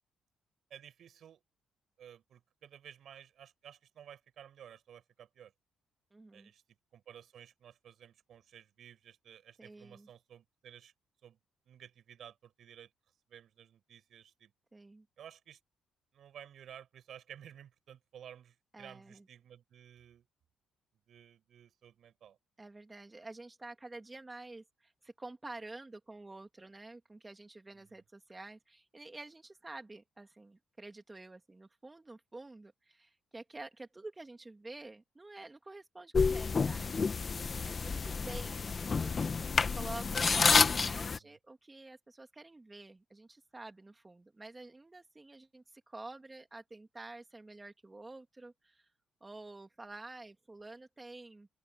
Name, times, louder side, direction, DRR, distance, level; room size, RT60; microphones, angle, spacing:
voice 1, 0.7-1.4 2.0-5.5 6.3-6.6 6.9-10.9 11.2-11.4 11.7-12.9 13.3-14.5 15.2-15.6 16.1-20.2 21.1-22.4 27.7-28.0 41.1-41.4, right 9 dB, 65° right, 7.1 m, -54 dB
voice 2, 6.1-6.5 9.6-10.1 14.7-15.1 18.7-19.2 22.6-37.2 37.6-39.4 39.7-48.9 49.2-51.5, right 2 dB, 20° right, 2.4 m, -49 dB
sound 1, 36.1-41.2, left 5 dB, 35° left, 1.3 m, -29 dB
open air
cardioid pair, 90°, 0 cm